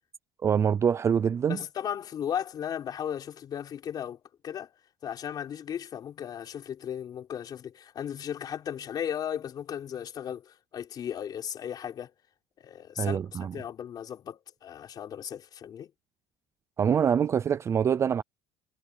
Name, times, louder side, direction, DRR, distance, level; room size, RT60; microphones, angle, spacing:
voice 1, 0.4-1.6 13.0-13.5 16.8-18.2, right 7 dB, 25° right, 0.5 m, -25 dB
voice 2, 1.5-4.7 5.0-12.1 12.6-15.9, left 9 dB, 35° left, 4.4 m, -36 dB
cardioid pair, 160°, 12 cm